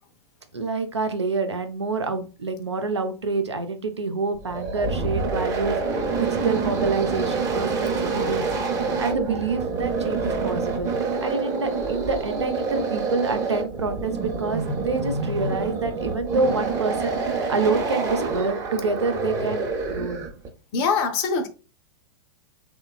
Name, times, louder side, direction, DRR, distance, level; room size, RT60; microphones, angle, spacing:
voice 1, 0.5-10.9 11.2-20.3, right 4 dB, 90° right, 0.5 m, -27 dB
sound 1, 4.4-20.5, right 4 dB, 25° right, 0.6 m, -27 dB
voice 2, 20.7-21.5, left 5 dB, 40° left, 0.4 m, -23 dB
3.0 x 2.2 x 2.3 m
figure-of-eight pair, 100°, 14 cm